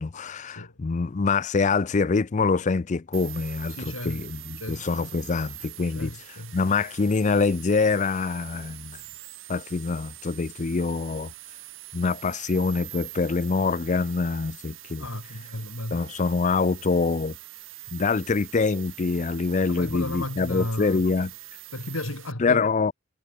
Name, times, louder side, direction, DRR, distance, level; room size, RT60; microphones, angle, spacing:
voice 1, 0.0-9.0 9.5-11.3 11.9-15.0 15.9-17.3 17.9-21.3 22.4-22.9, left 4 dB, 35° left, 0.5 m, -25 dB
sound 1, 3.1-22.3, right 16 dB, 70° right, 2.3 m, -44 dB
voice 2, 3.7-4.2 4.6-5.1 5.9-6.5 15.0-16.0 19.7-21.0 21.7-22.7, left 1 dB, 85° left, 3.5 m, -34 dB
head